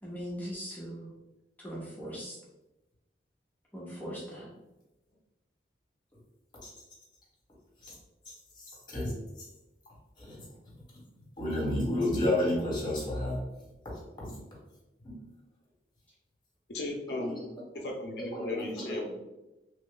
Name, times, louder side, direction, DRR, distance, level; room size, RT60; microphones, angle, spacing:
voice 1, 0.0-1.1 1.6-2.4 3.7-4.5, equal, 10° left, -6 dB, 0.8 m, -40 dB
voice 2, 11.4-13.4 14.2-14.3 15.0-15.1 18.3-19.1, left 1 dB, 25° left, -5 dB, 1.4 m, -30 dB
voice 3, 16.7-17.5 17.8-19.1, left 2 dB, 65° left, 0 dB, 0.5 m, -36 dB
3.1 x 2.5 x 3.7 m, 1.0 s
head